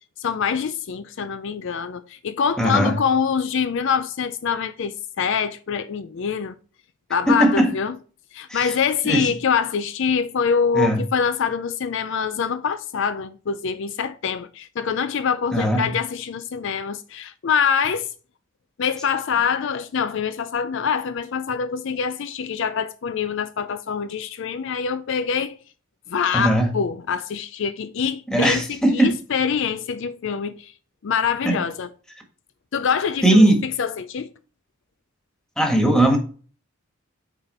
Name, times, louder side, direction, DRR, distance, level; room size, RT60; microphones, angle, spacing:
voice 1, 0.2-6.6 7.1-8.0 8.3-18.1 18.8-25.6 26.1-30.7 31.0-31.9 32.7-34.3, left 6 dB, 60° left, 0.4 m, -25 dB
voice 2, 2.6-2.9 7.3-7.7 8.5-8.7 9.0-9.3 10.7-11.0 15.5-15.9 26.3-26.7 28.3-29.1 31.4-31.5 33.2-33.6 35.6-36.2, right 1 dB, 5° left, 1.5 m, -18 dB
9.0 x 4.1 x 4.2 m
head